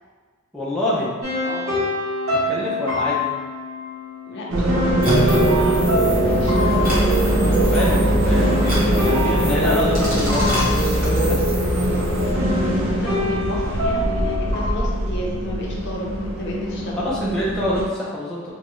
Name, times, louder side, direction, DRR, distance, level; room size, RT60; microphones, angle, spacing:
voice 1, 0.5-1.1 2.5-3.3 7.4-11.4 17.0-18.5, left 1 dB, 5° left, -8 dB, 0.4 m, -26 dB
sound 1, 1.2-12.0 12.3-14.6, left 2 dB, 80° right, 1.4 m, -27 dB
voice 2, 4.3-5.8 6.4-7.1 12.7-17.0, left 1 dB, 55° left, -3 dB, 0.6 m, -32 dB
sound 2, 4.5-17.8, right 1 dB, 65° right, 0.5 m, -24 dB
sound 3, 5.0-12.3, right 1 dB, 40° right, 1.0 m, -21 dB
3.0 x 2.4 x 3.0 m, 1.5 s
head